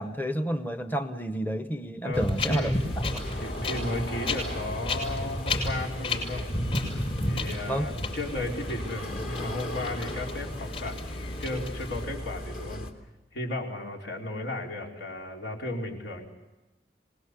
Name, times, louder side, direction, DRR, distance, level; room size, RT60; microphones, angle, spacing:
voice 1, 0.0-2.7 7.7-7.9, right 1 dB, 10° left, 8 dB, 0.8 m, -30 dB
voice 2, 2.0-2.7 3.4-6.5 7.3-11.1 11.4-12.9 13.3-16.3, left 1 dB, 85° left, 0 dB, 4.6 m, -34 dB
Wind, 2.1-12.0, left 2 dB, 35° left, 6.4 m, -33 dB
sound 1, 2.7-12.9, left 1 dB, 50° left, 2.5 m, -37 dB
26.0 x 20.0 x 8.3 m, 1.1 s
head